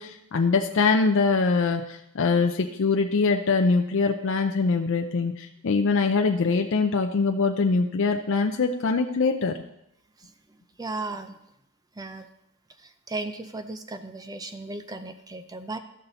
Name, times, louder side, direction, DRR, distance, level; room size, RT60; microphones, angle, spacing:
voice 1, 0.0-9.6, left 4 dB, 55° left, 4 dB, 0.5 m, -23 dB
voice 2, 10.2-11.4 11.9-12.3 12.8-15.8, right 2 dB, 15° right, 8 dB, 0.5 m, -36 dB
13.5 x 5.6 x 4.0 m, 0.82 s
head